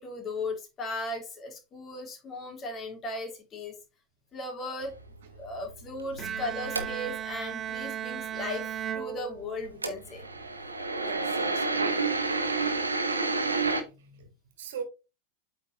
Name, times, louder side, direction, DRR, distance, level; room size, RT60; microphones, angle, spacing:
voice 1, 0.0-3.7 4.3-4.9 5.3-8.6 8.9-10.3 14.0-14.2, left 2 dB, 25° left, 3.2 m, -37 dB
sound 1, 4.8-7.3 9.6-13.8, right 3 dB, 80° right, 1.3 m, -29 dB
Bowed string instrument, 6.2-9.9, right 9 dB, 25° right, 0.6 m, -36 dB
voice 2, 11.0-12.2 14.0-14.3 14.6-14.8, right 7 dB, 55° right, 2.0 m, -41 dB
8.4 x 5.6 x 3.2 m
figure-of-eight pair, 90°, 0 cm